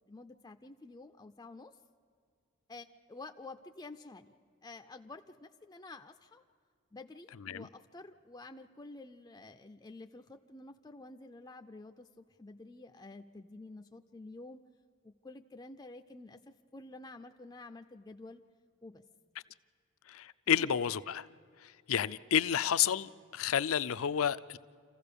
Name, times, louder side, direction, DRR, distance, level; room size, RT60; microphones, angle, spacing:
voice 1, 0.1-1.7 2.7-4.3 4.6-6.4 6.9-14.6 15.0-18.4 18.8-19.0 20.6-20.8, left 2 dB, 15° left, 0.4 m, -50 dB
voice 2, 20.1-21.2 21.6-24.6, left 9 dB, 70° left, 0.5 m, -31 dB
27.0 x 15.0 x 6.8 m
head